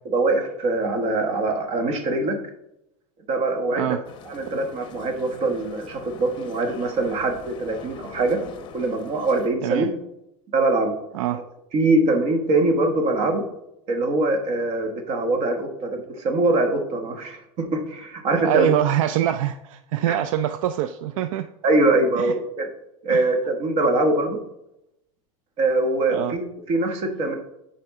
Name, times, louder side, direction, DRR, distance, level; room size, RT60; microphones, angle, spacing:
voice 1, 0.1-2.4 3.3-4.0 4.3-8.4 8.7-9.9 10.5-11.0 11.7-13.4 13.9-18.7 20.1-20.2 21.6-22.7 23.0-24.4 25.6-27.4, right 2 dB, 40° right, 5 dB, 1.2 m, -23 dB
sound 1, 4.1-9.5, left 6 dB, 30° left, 0.8 m, -42 dB
voice 2, 18.4-21.5 22.1-22.3 23.1-23.3 26.1-26.4, right 11 dB, 75° right, 11 dB, 0.4 m, -24 dB
9.5 x 4.4 x 3.6 m, 0.85 s
supercardioid pair, 145°, 17 cm